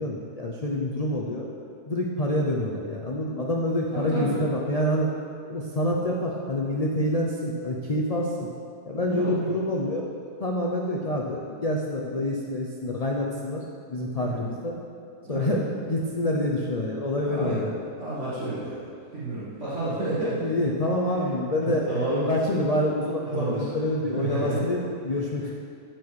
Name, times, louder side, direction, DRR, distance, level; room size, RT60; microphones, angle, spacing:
voice 1, 0.0-5.1 5.5-8.5 8.8-10.1 10.4-13.6 13.9-14.8 15.3-17.8 20.4-25.5, left 1 dB, 85° left, -2 dB, 0.3 m, -27 dB
voice 2, 3.9-4.4 9.1-9.5 14.2-14.4 15.2-15.5 17.3-17.7 18.0-20.4 21.6-22.3 23.3-23.7 24.1-24.7, right 2 dB, 45° right, -11 dB, 1.9 m, -30 dB
13.5 x 4.6 x 4.7 m, 2.3 s
omnidirectional pair, 1.8 m